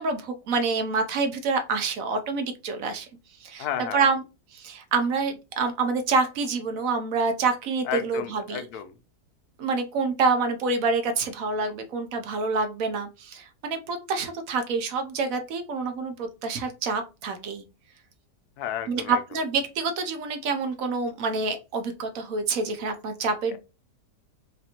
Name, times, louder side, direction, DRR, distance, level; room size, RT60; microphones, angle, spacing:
voice 1, 0.0-3.1 3.4-4.2 4.5-8.6 9.6-17.6 18.9-23.6, right 4 dB, 65° right, 7 dB, 1.0 m, -27 dB
voice 2, 3.6-4.1 7.8-8.9 18.6-19.2 23.5-23.6, left 10 dB, 75° left, 10 dB, 1.1 m, -32 dB
5.0 x 2.6 x 2.8 m, 0.29 s
omnidirectional pair, 1.8 m